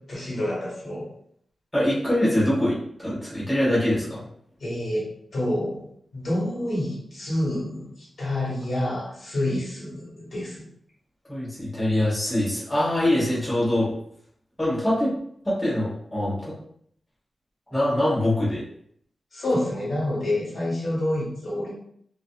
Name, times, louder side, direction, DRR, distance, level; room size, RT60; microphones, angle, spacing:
voice 1, 0.1-1.1 4.6-5.8 6.1-10.7 19.3-21.7, left 1 dB, 65° left, -6 dB, 1.2 m, -28 dB
voice 2, 1.7-4.2 11.3-13.9 14.6-15.1 15.4-16.6 17.7-18.6, left 1 dB, 10° left, -8 dB, 1.2 m, -23 dB
2.6 x 2.4 x 2.3 m, 0.66 s
wide cardioid pair, 130°, 0 cm